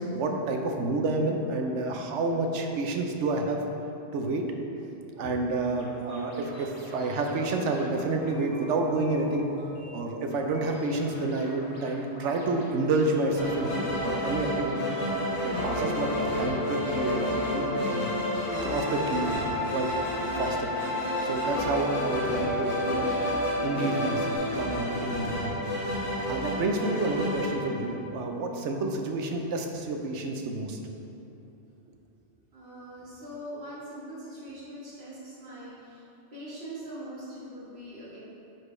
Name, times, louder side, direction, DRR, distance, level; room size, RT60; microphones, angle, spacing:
voice 1, 0.0-3.6 4.1-4.4 5.2-9.4 9.9-15.0 15.4-18.1 18.6-19.3 19.7-19.9 20.4-20.7 21.2-23.1 23.6-25.6 25.9-30.8, right 2 dB, 80° right, 3 dB, 1.0 m, -29 dB
sound 1, 5.8-24.4, equal, 90° left, 1.5 m, -47 dB
sound 2, 13.4-28.3, left 1 dB, 65° left, 1.8 m, -30 dB
voice 2, 32.5-36.0 36.3-38.2, right 1 dB, 50° right, -11 dB, 1.9 m, -42 dB
9.6 x 4.5 x 3.2 m, 2.9 s
omnidirectional pair, 1.2 m